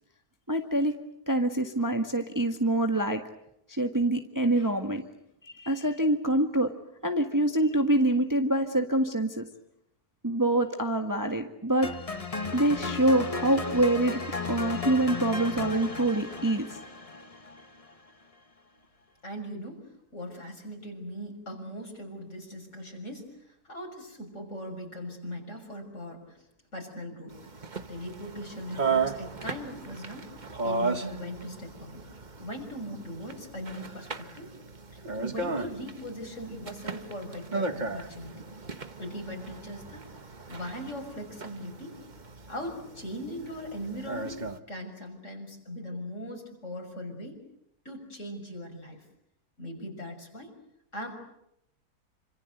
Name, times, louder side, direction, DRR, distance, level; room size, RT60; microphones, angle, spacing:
voice 1, 0.5-0.9 1.3-3.2 3.7-5.0 5.4-6.7 7.0-9.4 10.2-11.9 12.5-14.2 14.5-16.8, right 1 dB, 10° right, 5 dB, 1.6 m, -25 dB
sound 1, 11.8-17.9, left 4 dB, 25° left, 1.3 m, -35 dB
voice 2, 19.2-23.3 23.7-26.4 26.7-27.4 27.9-30.3 30.6-32.0 32.4-34.5 34.9-38.5 39.0-40.1 40.5-42.0 42.5-44.4 44.7-47.4 47.9-49.0 49.6-50.5 50.9-51.1, equal, 50° left, 3 dB, 6.7 m, -39 dB
sound 2, 27.3-44.6, right 4 dB, 30° right, 1.3 m, -36 dB
27.5 x 26.0 x 8.1 m, 0.79 s
omnidirectional pair, 1.6 m